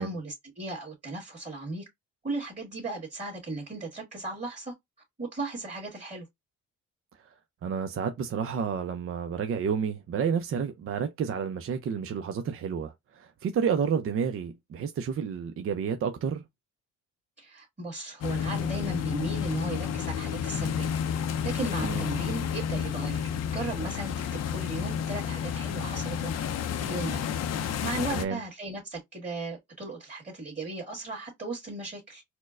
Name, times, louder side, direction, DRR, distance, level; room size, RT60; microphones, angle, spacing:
voice 1, 0.0-1.8 2.2-4.7 5.2-6.3 17.4-21.0 21.4-24.1 24.5-26.3 26.7-27.2 27.5-32.2, right 2 dB, 25° right, 1.8 m, -36 dB
voice 2, 7.6-16.4 21.8-22.1 28.1-28.4, right 7 dB, 45° right, 0.5 m, -30 dB
sound 1, 18.2-28.3, left 8 dB, 60° left, 0.5 m, -31 dB
4.3 x 2.1 x 2.4 m
cardioid pair, 90°, 30 cm